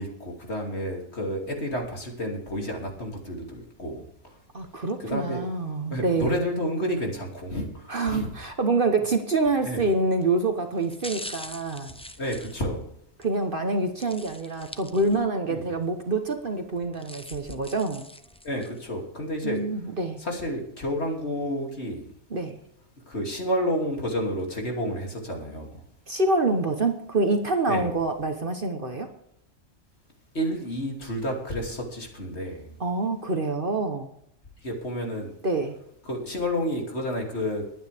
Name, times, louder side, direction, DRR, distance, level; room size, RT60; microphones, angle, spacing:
voice 1, 0.0-4.0 5.0-5.4 5.9-8.3 9.6-9.9 12.2-12.9 15.5-15.6 18.4-19.6 20.2-22.1 23.1-25.7 27.7-27.9 30.3-32.6 34.6-35.3 36.0-37.6, equal, 50° left, 1 dB, 3.1 m, -30 dB
voice 2, 4.5-6.4 7.9-11.9 13.2-18.0 19.4-20.2 22.3-22.6 26.1-29.1 32.8-34.1 35.4-35.8, right 3 dB, 40° right, 6 dB, 1.2 m, -26 dB
sound 1, 9.8-10.1 10.7-13.3 14.0-15.4 15.8-15.9 16.7-18.9 19.4-19.5, left 1 dB, 5° left, 0.5 m, -43 dB
21.5 x 9.4 x 3.5 m, 0.73 s
omnidirectional pair, 1.4 m